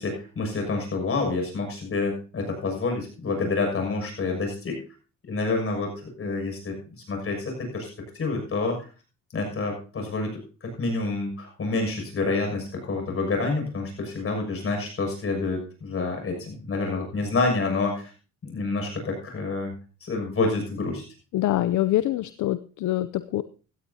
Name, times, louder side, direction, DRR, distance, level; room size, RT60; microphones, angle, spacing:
voice 1, 0.0-4.8 5.2-6.7 7.1-7.9 8.2-8.8 9.3-10.3 10.6-18.1 18.4-19.7 20.0-21.0, left 3 dB, 45° left, 3 dB, 6.6 m, -28 dB
voice 2, 21.3-23.4, left 14 dB, 75° left, 14 dB, 0.6 m, -25 dB
16.5 x 13.5 x 2.8 m, 0.36 s
cardioid pair, 90°, 30 cm